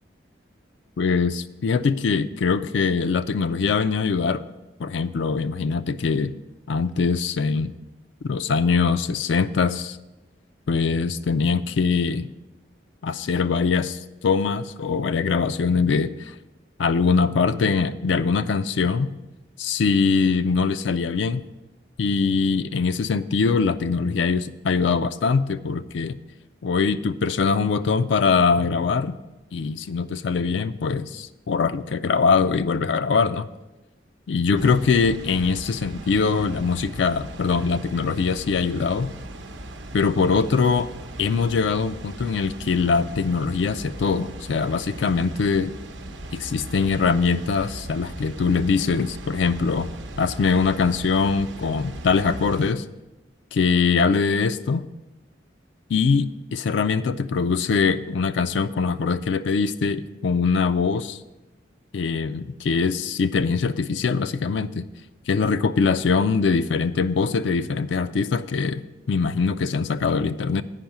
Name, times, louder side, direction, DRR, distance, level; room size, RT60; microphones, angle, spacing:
voice 1, 1.0-4.4 4.8-6.4 6.7-7.7 8.2-10.0 10.7-12.3 13.0-16.1 16.8-19.1 19.6-21.4 22.0-26.2 26.6-29.2 29.5-33.5 34.3-39.1 39.9-40.9 41.2-45.7 46.3-49.9 50.2-52.8 53.5-54.8 55.9-61.2 61.9-64.9 65.3-70.6, left 5 dB, 80° left, 11 dB, 0.4 m, -22 dB
Water, 34.6-52.7, right 1 dB, 85° right, 0.8 m, -38 dB
9.1 x 5.5 x 7.0 m, 1.0 s
head